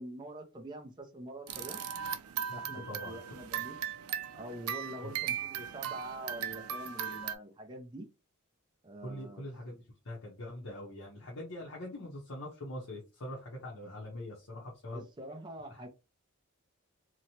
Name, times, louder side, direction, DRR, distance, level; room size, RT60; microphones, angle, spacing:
voice 1, 0.0-1.8 2.5-3.9 4.3-8.1 8.8-9.5 14.9-15.9, right 1 dB, 20° right, 2 dB, 0.4 m, -45 dB
sound 1, 1.5-7.4, right 9 dB, 90° right, 0.4 m, -38 dB
voice 2, 2.9-3.2 5.0-5.2 9.0-15.0 15.7-15.8, left 1 dB, 75° left, -4 dB, 0.8 m, -43 dB
2.9 x 2.1 x 2.7 m, 0.29 s
head